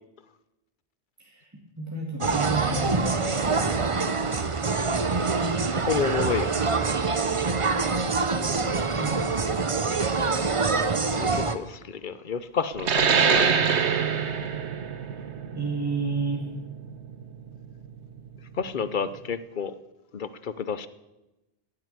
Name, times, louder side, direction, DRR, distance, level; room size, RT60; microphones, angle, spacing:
voice 1, 1.8-4.2 9.0-9.2 15.5-16.4, right 3 dB, 15° right, -2 dB, 2.3 m, -31 dB
sound 1, 2.2-11.6, right 4 dB, 30° right, 0.8 m, -25 dB
voice 2, 5.8-7.0 11.2-13.6 18.5-19.7 20.1-20.9, left 6 dB, 50° left, 14 dB, 0.9 m, -30 dB
sound 2, 12.8-17.9, right 6 dB, 85° right, 1.4 m, -25 dB
16.0 x 7.8 x 9.6 m, 0.99 s
omnidirectional pair, 1.1 m